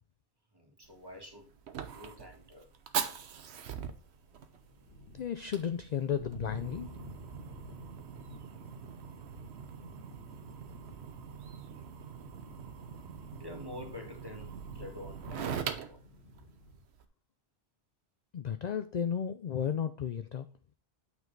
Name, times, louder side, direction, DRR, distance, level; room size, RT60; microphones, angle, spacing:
voice 1, 0.5-2.7 5.4-5.5 13.4-16.0, left 2 dB, 20° right, 2 dB, 1.7 m, -48 dB
Fire, 0.8-17.0, right 7 dB, 80° right, 1.1 m, -42 dB
sound 1, 4.1-16.8, left 1 dB, 75° left, 2.0 m, -51 dB
voice 2, 5.1-6.9 18.3-20.5, left 8 dB, 55° left, 11 dB, 0.5 m, -33 dB
8.7 x 4.7 x 3.9 m, 0.41 s
omnidirectional pair, 1.1 m